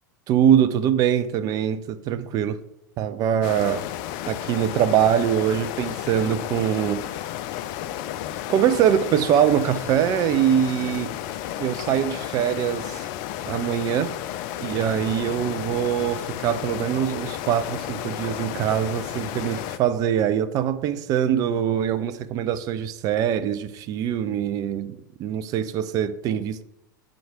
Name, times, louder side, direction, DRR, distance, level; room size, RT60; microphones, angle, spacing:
voice 1, 0.3-2.6 3.0-3.9 4.3-7.0 8.5-11.1 11.6-13.1 13.5-14.2 14.6-26.6, right 9 dB, 35° right, 0.5 m, -23 dB
sound 1, 3.4-19.8, left 12 dB, 45° left, 0.5 m, -33 dB
7.6 x 4.7 x 5.0 m
figure-of-eight pair, 90°, 11 cm